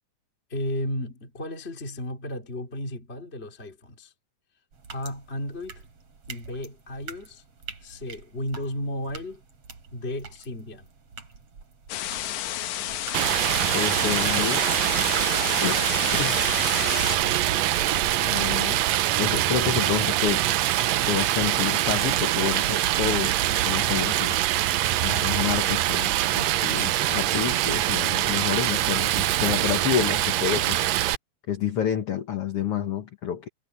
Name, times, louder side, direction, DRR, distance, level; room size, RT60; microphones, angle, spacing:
voice 1, 0.5-4.1 4.9-5.8 6.3-7.4 7.8-9.4 9.9-10.9 15.6-17.4, left 1 dB, 20° left, 2.9 m, -34 dB
sound 1, 4.7-20.3, right 5 dB, 45° right, 4.8 m, -45 dB
sound 2, 11.9-17.2, left 13 dB, 70° left, 2.1 m, -31 dB
Stream, 13.1-31.2, right 14 dB, 80° right, 1.5 m, -24 dB
voice 2, 13.7-14.8 15.6-15.8 16.1-16.4 18.2-18.9 19.2-20.5 21.1-24.4 25.0-30.9 31.5-33.5, left 9 dB, 55° left, 1.8 m, -29 dB
omnidirectional pair, 4.0 m